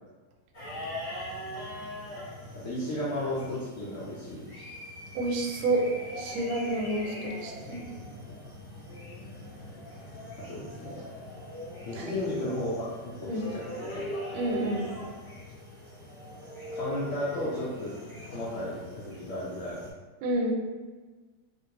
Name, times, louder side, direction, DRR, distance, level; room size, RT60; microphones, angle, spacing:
sound 1, 0.5-19.9, equal, 35° left, 1.1 m, -41 dB
voice 1, 2.6-4.4 10.4-11.0 11.9-12.9 13.2-14.0 16.7-17.9 18.3-19.8, left 1 dB, 75° left, -8 dB, 0.7 m, -34 dB
voice 2, 5.1-5.8 6.2-7.8 12.0-12.2 13.3-13.4 14.3-14.9 20.2-20.5, right 2 dB, 80° right, 1 dB, 1.3 m, -29 dB
3.0 x 2.5 x 2.8 m, 1.3 s
omnidirectional pair, 2.1 m